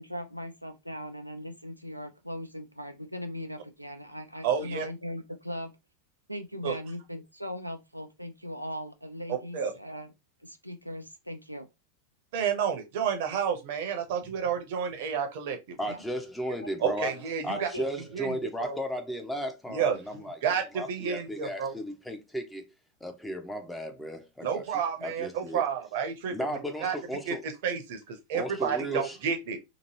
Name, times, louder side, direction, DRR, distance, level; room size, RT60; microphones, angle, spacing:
voice 1, 0.0-5.7 6.3-10.1 10.4-11.7 15.8-16.0 16.6-16.7 17.6-17.9, equal, 90° right, 0.4 m, -39 dB
voice 2, 4.4-4.9 6.6-6.8 9.3-9.7 12.3-15.8 16.8-17.7 18.1-18.8 19.7-21.7 24.4-26.4 26.8-27.0 27.3-27.4 27.6-29.6, right 7 dB, 50° right, 0.8 m, -30 dB
voice 3, 15.8-17.1 17.4-22.7 23.0-25.6 26.3-27.4 28.3-29.2, equal, 5° left, 0.6 m, -35 dB
2.9 x 2.6 x 2.8 m
figure-of-eight pair, 90°, 0 cm